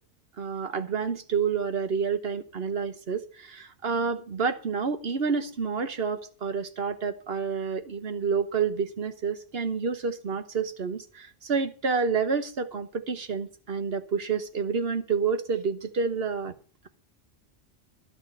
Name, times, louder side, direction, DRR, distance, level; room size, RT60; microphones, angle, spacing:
voice 1, 0.4-16.5, right 5 dB, 55° right, 1.3 m, -29 dB
11.5 x 6.3 x 8.1 m
omnidirectional pair, 1.2 m